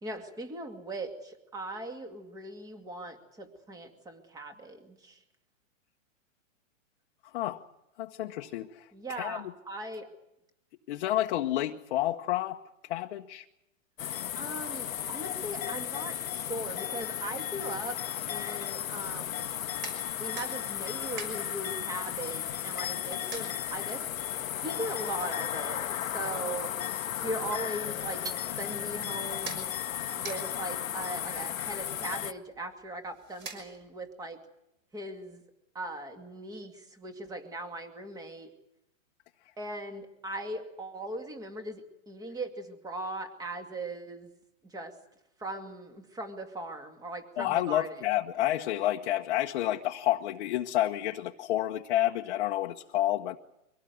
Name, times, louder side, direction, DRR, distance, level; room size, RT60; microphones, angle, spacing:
voice 1, 0.0-5.2 8.9-10.1 14.3-18.0 18.3-19.5 20.2-24.0 24.6-26.7 27.1-29.7 30.1-34.4 34.9-35.4 35.7-38.5 39.6-44.3 44.6-44.9 45.4-48.0, right 1 dB, 10° right, 7 dB, 2.3 m, -39 dB
voice 2, 8.0-9.4 10.9-12.6 12.9-13.4 47.4-53.4, left 14 dB, 45° left, 2 dB, 1.2 m, -30 dB
sound 1, 14.0-32.3, left 11 dB, 80° left, 1.2 m, -35 dB
sound 2, 19.5-34.1, right 4 dB, 25° right, 6.1 m, -49 dB
24.0 x 17.5 x 9.4 m, 0.86 s
hypercardioid pair, 155°, 40 cm